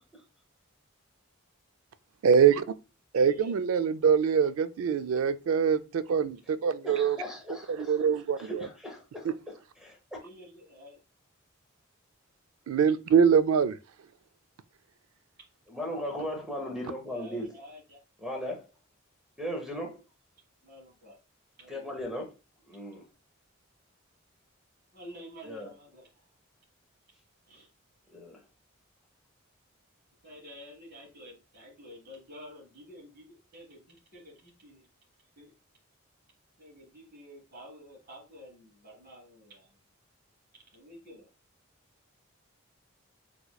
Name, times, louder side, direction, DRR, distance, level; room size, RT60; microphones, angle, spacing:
voice 1, 2.2-2.6 3.1-7.2 7.7-8.7 9.2-9.3 12.7-13.8, right 7 dB, 75° right, 0.3 m, -24 dB
voice 2, 6.8-7.9 8.5-9.6 9.8-10.2 15.7-17.6 18.2-18.6 19.4-20.0 21.7-22.3 22.7-23.0 25.4-25.7 28.1-28.4, equal, 5° right, 0.6 m, -37 dB
voice 3, 10.2-11.0 17.1-18.0 20.6-21.1 21.6-22.1 24.9-26.0 27.5-27.7 30.2-34.8 35.4-35.5 36.6-39.7 40.7-41.3, equal, 45° right, 1.3 m, -50 dB
4.0 x 3.0 x 2.2 m
head